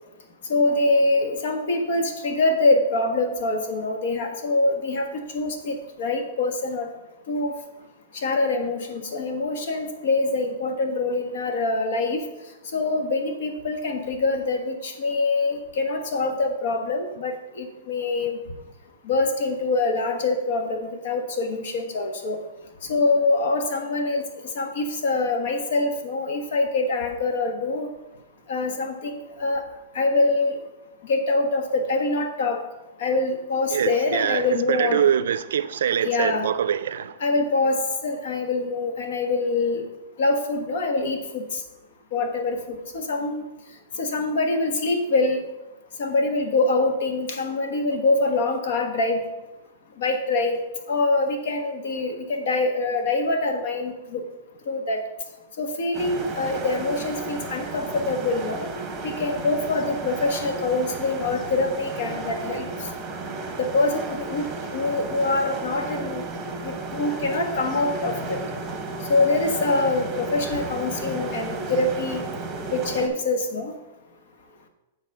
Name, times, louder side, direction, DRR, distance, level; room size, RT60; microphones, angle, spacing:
voice 1, 0.5-6.9 7.3-7.5 8.1-12.2 12.7-18.4 19.0-22.4 22.9-24.2 24.5-27.9 28.5-29.6 29.9-30.6 31.0-32.6 33.0-35.0 36.0-36.5 37.2-39.8 40.2-41.6 42.1-43.4 44.0-45.4 46.0-49.2 50.0-50.6 50.9-54.2 54.7-55.0 55.6-58.7 59.0-62.7 63.6-64.5 64.7-66.2 66.6-68.4 69.1-72.2 72.7-73.7, left 3 dB, 60° left, 5 dB, 1.3 m, -24 dB
voice 2, 33.7-37.2, right 9 dB, 75° right, 14 dB, 0.5 m, -24 dB
sound 1, 55.9-73.1, right 3 dB, 15° right, 1.0 m, -33 dB
7.7 x 4.1 x 6.5 m, 1.0 s
hypercardioid pair, 160°, 0 cm